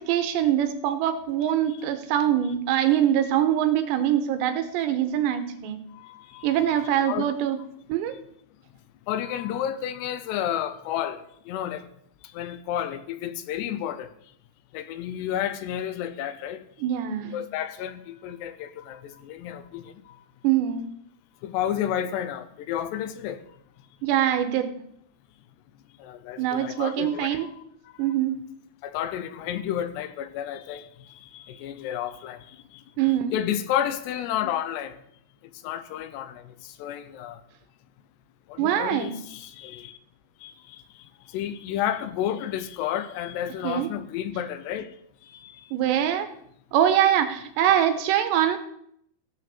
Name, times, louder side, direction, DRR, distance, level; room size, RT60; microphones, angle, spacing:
voice 1, 0.0-5.8 6.4-7.6 7.9-8.1 16.8-17.4 20.4-20.9 24.0-24.7 26.4-27.5 28.0-28.4 33.0-33.3 38.6-39.2 43.6-43.9 45.7-46.3 46.7-48.6, right 10 dB, 85° right, 3.0 m, -23 dB
voice 2, 1.4-1.8 5.9-7.3 9.1-11.8 12.3-14.1 14.7-16.6 17.3-20.2 21.4-23.4 26.0-27.5 28.8-30.9 31.3-32.6 33.0-35.0 35.6-37.4 38.5-40.0 40.4-40.8 41.3-44.9 45.3-45.7, left 10 dB, 80° left, 2.8 m, -31 dB
15.5 x 5.6 x 6.9 m
omnidirectional pair, 5.1 m